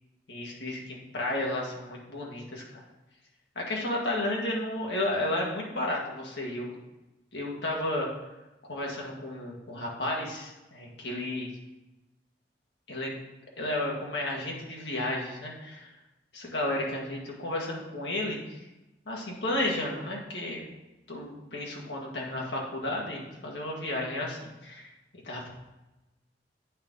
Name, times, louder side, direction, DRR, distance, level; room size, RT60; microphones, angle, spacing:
voice 1, 0.3-2.8 3.5-6.8 7.3-8.1 8.6-11.5 12.9-13.1 13.6-15.9 16.3-18.7 19.0-20.6 21.1-24.9 25.2-25.5, left 1 dB, 80° left, -2 dB, 1.7 m, -32 dB
8.6 x 3.8 x 5.4 m, 1.0 s
head